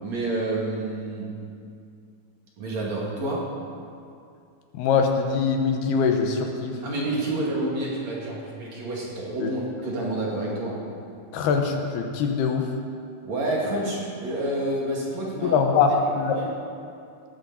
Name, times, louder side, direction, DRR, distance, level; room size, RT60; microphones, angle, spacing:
voice 1, 0.0-1.4 2.6-3.5 6.8-10.8 13.2-15.6 16.3-16.5, right 2 dB, 45° right, -4 dB, 3.1 m, -29 dB
voice 2, 4.7-6.8 9.4-9.5 11.3-12.7 15.4-16.5, left 5 dB, 75° left, 3 dB, 3.0 m, -23 dB
18.0 x 14.0 x 4.2 m, 2.4 s
omnidirectional pair, 4.8 m